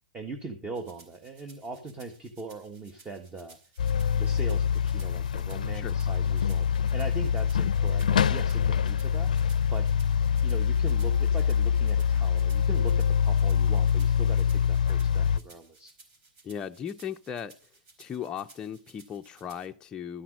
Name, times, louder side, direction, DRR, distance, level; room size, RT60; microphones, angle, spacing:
voice 1, 0.1-3.6 4.1-9.3 9.7-9.9 10.4-15.9, right 3 dB, 20° right, 6 dB, 1.3 m, -40 dB
sound 1, 0.7-19.7, right 3 dB, 45° right, 4.3 m, -57 dB
sound 2, 3.8-15.4, left 8 dB, 85° left, 0.5 m, -25 dB
voice 2, 16.4-17.6 18.0-20.2, left 8 dB, 20° left, 5 dB, 0.5 m, -37 dB
13.0 x 5.9 x 6.1 m, 0.37 s
hypercardioid pair, 120°, 4 cm